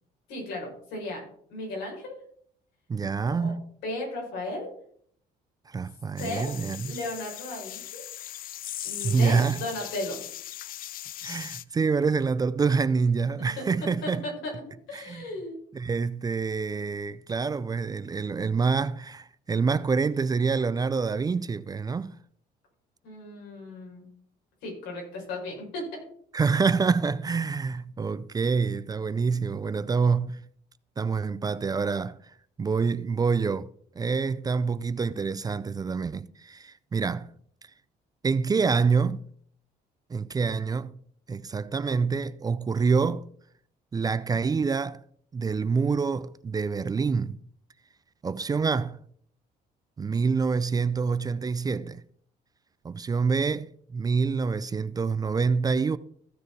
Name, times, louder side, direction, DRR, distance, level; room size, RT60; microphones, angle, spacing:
voice 1, 0.3-1.2 1.5-2.1 3.4-3.5 3.8-4.7 6.2-6.6 6.8-8.0 8.8-10.2 13.4-13.6 14.0-14.5 14.9-15.5 23.0-24.1 24.6-25.8, left 2 dB, 90° left, 5.2 m, -35 dB
voice 2, 2.9-3.6 5.7-6.9 9.0-9.6 11.2-14.3 14.9-15.3 15.7-22.2 26.3-30.4 31.0-32.2 32.6-33.7 34.0-37.3 38.2-39.2 40.1-41.0 41.3-43.3 43.9-45.0 45.3-47.4 48.2-49.0 50.0-52.0 52.8-56.0, right 5 dB, 25° right, 0.4 m, -26 dB
sound 1, 6.2-11.6, left 13 dB, 60° left, 0.5 m, -39 dB
15.0 x 6.5 x 4.5 m
cardioid pair, 110°, 17 cm